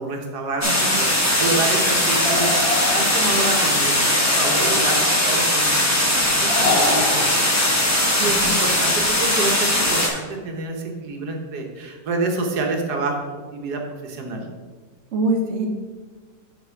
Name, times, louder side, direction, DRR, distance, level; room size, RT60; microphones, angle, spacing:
voice 1, 0.0-14.5, right 3 dB, 75° right, 2 dB, 1.5 m, -28 dB
sound 1, 0.6-10.1, left 1 dB, 10° left, 0.9 m, -19 dB
voice 2, 0.6-1.3 8.2-8.6 15.1-15.7, right 2 dB, 50° right, 2 dB, 1.1 m, -25 dB
sound 2, 2.2-3.6 4.3-5.4 6.5-7.2, left 3 dB, 40° left, 2.0 m, -26 dB
6.6 x 4.3 x 5.8 m, 1.4 s
omnidirectional pair, 1.8 m